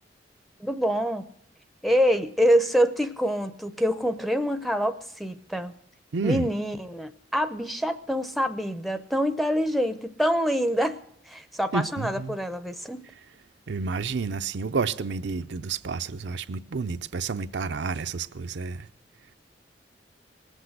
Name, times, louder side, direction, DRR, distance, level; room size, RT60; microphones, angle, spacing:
voice 1, 0.6-1.2 1.8-5.7 6.2-11.0 11.3-13.0, equal, ahead, 0.6 m, -25 dB
voice 2, 6.1-6.5 11.7-12.4 13.7-18.8, right 4 dB, 70° right, 0.5 m, -30 dB
19.5 x 8.1 x 7.8 m
head